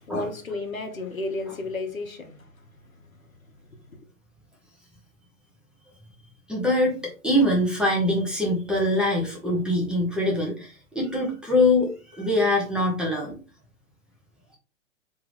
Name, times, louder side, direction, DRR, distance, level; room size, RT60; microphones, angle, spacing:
voice 1, 0.1-2.3, left 2 dB, 90° left, 1.1 m, -32 dB
voice 2, 6.5-7.0 7.2-13.4, left 1 dB, ahead, 0.9 m, -23 dB
3.5 x 3.3 x 3.4 m
figure-of-eight pair, 120°, 40 cm